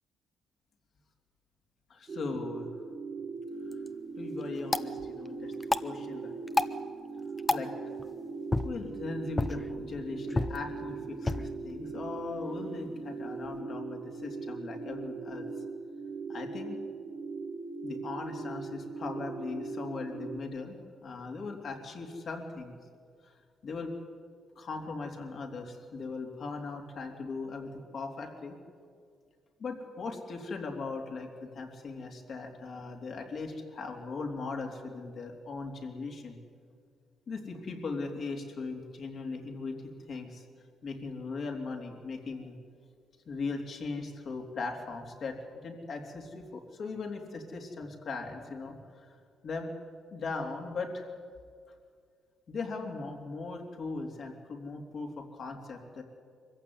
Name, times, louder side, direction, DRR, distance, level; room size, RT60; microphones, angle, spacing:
voice 1, 1.9-2.7 4.2-5.5 5.8-6.4 7.5-7.7 8.6-15.5 16.3-16.8 17.8-22.7 23.2-23.3 23.6-23.9 24.6-28.6 29.6-36.4 37.3-40.5 40.8-42.6 43.3-49.2 49.4-49.7 50.1-51.1 52.5-56.0, left 3 dB, 55° left, 2 dB, 3.4 m, -39 dB
sound 1, 2.1-20.4, right 4 dB, 40° right, 1.9 m, -40 dB
sound 2, 3.5-13.6, left 2 dB, 20° left, 0.8 m, -36 dB
23.5 x 15.0 x 9.7 m, 2.1 s
cardioid pair, 90°, 0 cm